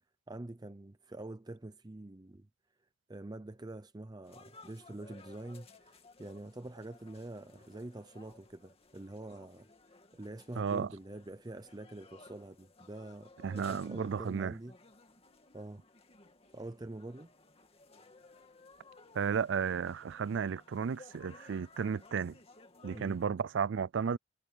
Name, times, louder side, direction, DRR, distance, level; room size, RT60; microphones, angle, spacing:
voice 1, 0.3-2.5 3.1-14.7 15.5-15.8 16.5-17.3 22.9-23.2, right 2 dB, 20° right, 0.6 m, -46 dB
sound 1, 4.2-23.3, left 3 dB, 30° left, 2.4 m, -58 dB
voice 2, 10.6-10.9 13.4-14.5 19.1-22.4 22.8-24.2, right 6 dB, 70° right, 0.4 m, -33 dB
head